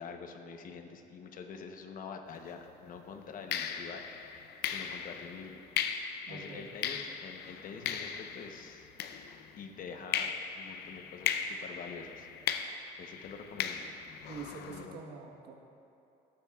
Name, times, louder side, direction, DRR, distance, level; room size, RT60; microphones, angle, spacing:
voice 1, 0.0-5.6 6.3-8.9 9.6-12.3 13.0-13.8 14.6-15.0, left 5 dB, 55° left, 5 dB, 0.9 m, -46 dB
sound 1, 2.4-2.6 3.5-9.7 10.1-14.9, left 8 dB, 75° left, 0.6 m, -38 dB
voice 2, 6.3-6.7 14.3-15.5, right 5 dB, 80° right, 1 dB, 1.3 m, -45 dB
18.0 x 8.8 x 2.4 m, 2.7 s
cardioid pair, 110°, 17 cm